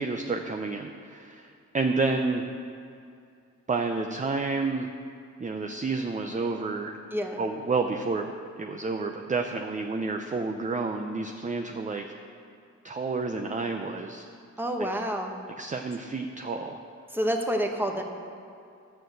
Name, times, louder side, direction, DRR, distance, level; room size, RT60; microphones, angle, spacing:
voice 1, 0.0-1.5 1.7-2.4 3.7-4.9 5.4-7.0 7.4-8.3 8.6-12.1 12.8-14.3 15.6-16.8, right 3 dB, 25° right, 4 dB, 0.5 m, -30 dB
voice 2, 14.6-15.3 17.1-18.0, equal, 5° right, 3 dB, 1.1 m, -28 dB
11.0 x 6.6 x 7.8 m, 2.4 s
wide cardioid pair, 125°, 29 cm